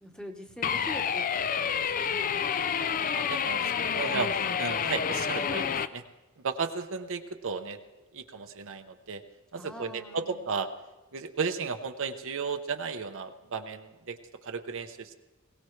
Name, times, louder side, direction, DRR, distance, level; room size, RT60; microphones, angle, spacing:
voice 1, 0.0-2.2 9.5-10.5, equal, 5° left, 3 dB, 1.2 m, -44 dB
sound 1, 0.6-5.9, left 7 dB, 40° left, 0.4 m, -29 dB
voice 2, 3.1-4.3 4.6-6.0 6.4-7.8 8.1-9.2 9.5-10.7 11.1-14.2 14.4-15.2, right 5 dB, 60° right, 6 dB, 0.8 m, -34 dB
21.5 x 18.0 x 3.2 m, 1.2 s
head